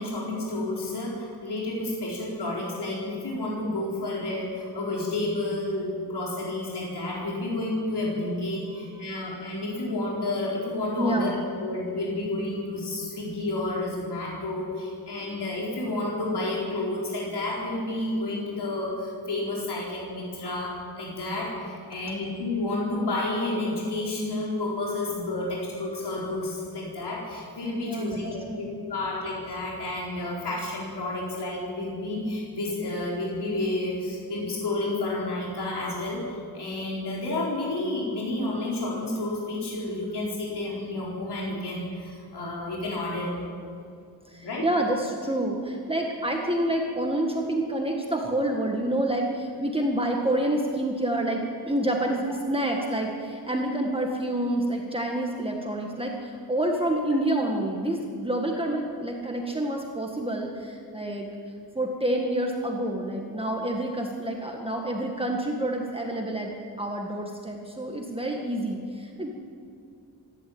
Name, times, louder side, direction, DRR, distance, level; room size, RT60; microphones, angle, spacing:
voice 1, 0.0-43.3 44.4-44.7, left 2 dB, 80° left, -3 dB, 4.5 m, -30 dB
voice 2, 11.0-11.4 27.8-28.2 28.5-28.6 44.3-61.3 61.7-66.5 66.8-69.3, right 1 dB, 15° right, 0 dB, 1.7 m, -28 dB
26.5 x 12.0 x 8.7 m, 2.3 s
wide cardioid pair, 175°, 39 cm